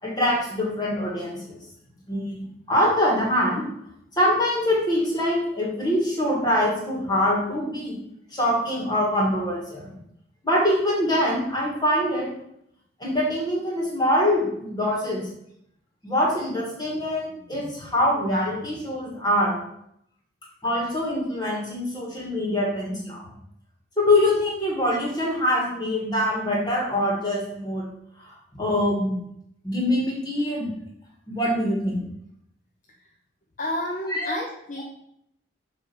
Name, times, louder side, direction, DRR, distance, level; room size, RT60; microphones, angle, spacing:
voice 1, 0.0-1.6 2.1-3.6 4.2-8.0 8.3-9.8 10.4-12.3 13.0-15.2 16.0-19.6 20.6-23.3 24.0-27.8 28.2-29.2 29.6-30.7 31.3-32.0 34.1-34.3, left 1 dB, 20° left, -3 dB, 2.2 m, -24 dB
voice 2, 33.6-34.8, left 1 dB, 40° left, 0 dB, 0.7 m, -30 dB
7.4 x 3.5 x 6.3 m, 0.74 s
head